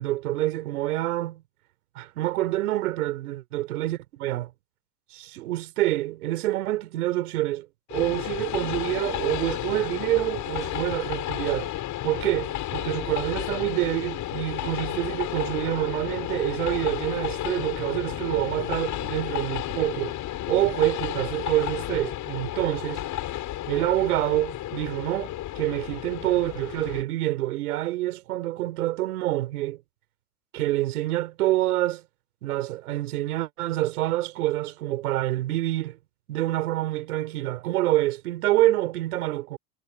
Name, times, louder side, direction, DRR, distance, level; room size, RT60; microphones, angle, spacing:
voice 1, 0.0-1.4 2.0-4.5 5.1-7.7 7.9-11.7 12.0-20.1 20.5-23.0 23.7-29.8 30.5-32.0 32.4-36.0 36.3-39.6, right 16 dB, 85° right, 4.1 m, -27 dB
Train, 7.9-27.0, left 13 dB, 45° left, 7.1 m, -32 dB
supercardioid pair, 115°, 43 cm